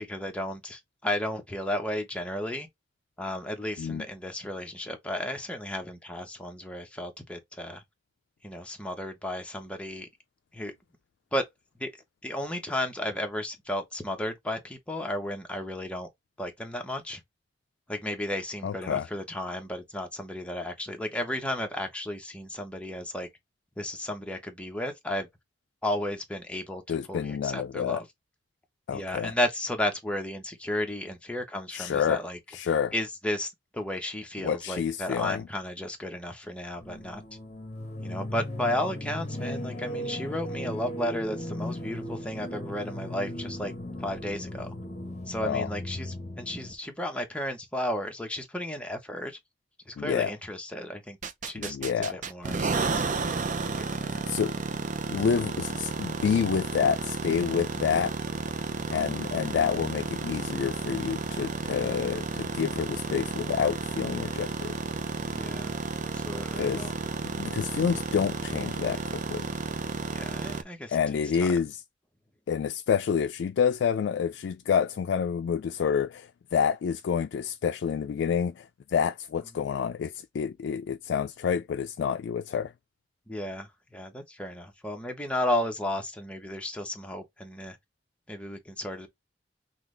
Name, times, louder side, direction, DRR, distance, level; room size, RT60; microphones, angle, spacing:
voice 1, 0.0-2.7 3.2-7.8 8.4-10.1 10.5-10.7 11.3-11.4 11.8-11.9 12.2-16.1 16.4-17.2 17.9-23.3 23.8-25.3 25.8-28.1 28.9-32.4 32.9-37.2 38.0-43.7 44.0-44.7 45.3-49.4 49.9-51.2 51.5-54.3 65.2-65.7 66.1-66.9 70.1-71.0 71.4-71.5 83.3-87.8 88.3-89.1, left 1 dB, 5° left, 1.1 m, -33 dB
voice 2, 18.6-19.1 26.9-28.0 28.9-29.3 31.7-32.2 32.5-32.9 34.4-35.4 45.4-45.7 50.0-50.3 51.6-52.2 54.2-54.5 55.1-58.2 58.9-64.7 66.6-66.9 67.4-69.5 70.9-71.8 72.5-82.7, left 7 dB, 75° left, 0.3 m, -28 dB
sound 1, 36.8-46.7, left 1 dB, 40° left, 1.2 m, -37 dB
sound 2, 51.2-70.6, right 3 dB, 45° right, 0.6 m, -32 dB
5.9 x 2.4 x 3.3 m
head